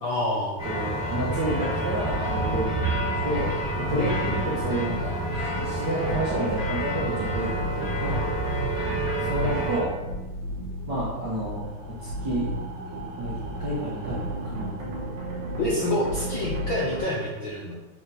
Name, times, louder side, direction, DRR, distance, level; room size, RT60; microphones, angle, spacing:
voice 1, 0.0-0.6 3.9-4.2 15.6-17.7, left 1 dB, 70° left, -5 dB, 1.2 m, -27 dB
sound 1, 0.6-9.8, right 1 dB, 15° left, 1.5 m, -28 dB
voice 2, 0.6-3.5 3.8-8.2 9.2-9.9 10.9-12.5 13.2-14.7, right 1 dB, 60° right, -7 dB, 1.2 m, -30 dB
sound 2, 1.0-17.0, equal, 75° right, 2.6 m, -34 dB
7.6 x 3.8 x 4.1 m, 1.1 s
omnidirectional pair, 3.4 m